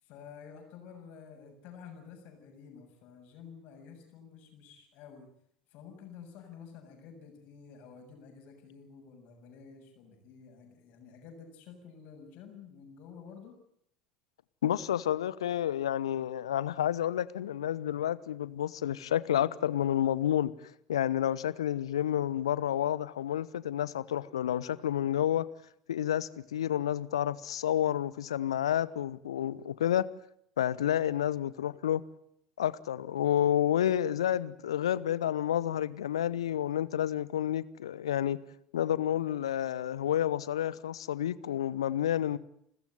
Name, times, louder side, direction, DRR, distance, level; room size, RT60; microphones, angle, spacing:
voice 1, 0.0-5.3 5.7-13.6, left 6 dB, 50° left, 7.1 m, -50 dB
voice 2, 14.6-25.4 25.9-30.0 30.6-32.0 32.6-38.4 38.7-42.4, left 11 dB, 70° left, 0.9 m, -30 dB
29.5 x 14.5 x 9.3 m
figure-of-eight pair, 70°, 3 cm